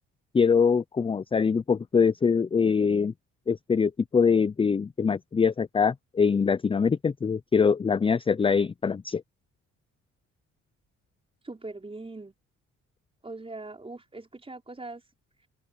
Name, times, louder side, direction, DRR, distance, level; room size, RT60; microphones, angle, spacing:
voice 1, 0.3-3.1 3.5-9.2, left 5 dB, 20° left, 0.4 m, -23 dB
voice 2, 11.4-12.3 13.2-15.0, right 2 dB, 20° right, 4.8 m, -41 dB
open air
cardioid pair, 90°, 30 cm